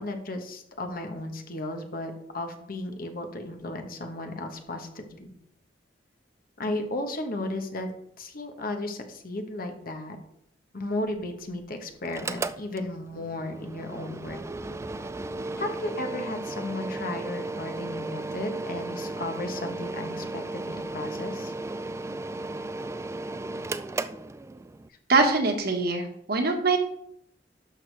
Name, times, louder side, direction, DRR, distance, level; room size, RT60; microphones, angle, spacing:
voice 1, 0.0-5.3 6.6-7.9 8.2-10.2 10.7-14.4 15.6-21.5, left 1 dB, 55° left, 5 dB, 1.2 m, -34 dB
Mechanical fan, 12.1-24.9, right 2 dB, 15° right, 0.3 m, -35 dB
voice 2, 25.1-26.8, right 3 dB, 60° right, 4 dB, 1.5 m, -23 dB
11.5 x 6.4 x 3.4 m, 0.72 s
head